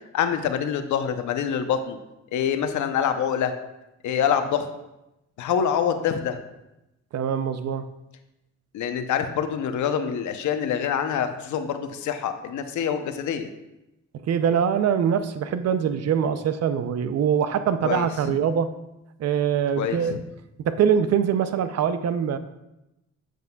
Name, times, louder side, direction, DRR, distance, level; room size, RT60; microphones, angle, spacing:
voice 1, 0.1-2.0 2.3-3.5 4.0-4.7 5.4-6.4 8.7-13.5 17.8-18.1 19.8-20.2, left 8 dB, 75° left, 8 dB, 0.8 m, -25 dB
voice 2, 7.1-7.9 14.3-18.7 19.2-20.2 20.6-22.4, right 8 dB, 55° right, 12 dB, 0.5 m, -23 dB
8.0 x 7.5 x 2.3 m, 0.92 s
cardioid pair, 90°, 30 cm